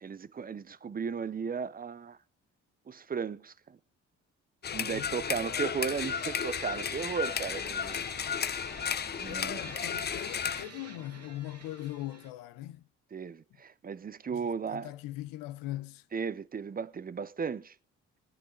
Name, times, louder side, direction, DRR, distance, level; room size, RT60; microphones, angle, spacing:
voice 1, 0.0-2.2 2.9-3.8 4.7-8.0 9.2-9.6 13.1-14.9 16.1-17.8, right 6 dB, 25° right, 0.6 m, -35 dB
sound 1, 4.6-10.7, left 7 dB, 30° left, 0.6 m, -34 dB
voice 2, 4.7-5.8 9.3-12.8 14.3-16.0, left 15 dB, 75° left, 0.8 m, -41 dB
sound 2, 5.8-12.3, right 4 dB, 45° right, 2.1 m, -49 dB
19.5 x 10.0 x 3.8 m
hypercardioid pair, 55°, 34 cm